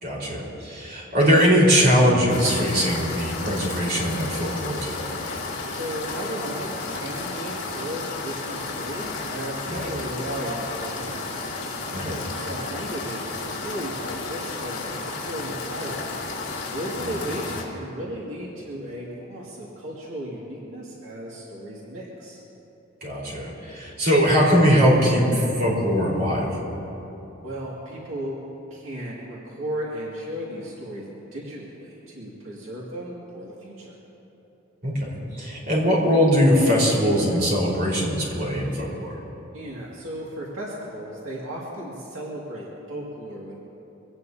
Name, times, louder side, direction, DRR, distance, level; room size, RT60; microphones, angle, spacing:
voice 1, 0.0-5.1 9.7-9.9 11.9-12.2 23.0-26.5 34.8-39.1, equal, 50° right, -4 dB, 4.3 m, -21 dB
sound 1, 2.3-17.6, left 3 dB, 65° left, 3.0 m, -32 dB
voice 2, 5.7-11.3 12.0-16.1 16.7-22.4 27.4-28.4 28.7-34.0 39.5-43.6, equal, 85° right, -5 dB, 2.1 m, -35 dB
24.0 x 17.5 x 2.8 m, 3.0 s
head